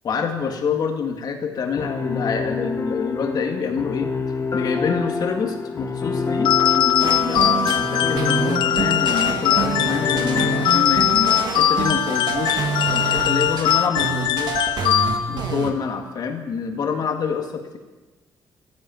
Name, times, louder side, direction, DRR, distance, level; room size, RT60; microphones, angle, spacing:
voice 1, 0.0-4.1 4.5-17.8, left 6 dB, 55° left, 4 dB, 2.0 m, -27 dB
sound 1, 1.8-10.7, left 4 dB, 40° left, 1.7 m, -27 dB
sound 2, 6.4-15.5, left 12 dB, 90° left, 0.5 m, -21 dB
sound 3, 7.0-15.7, right 6 dB, 65° right, 1.9 m, -27 dB
14.0 x 10.5 x 9.2 m, 1.2 s
cardioid pair, 110°, 8 cm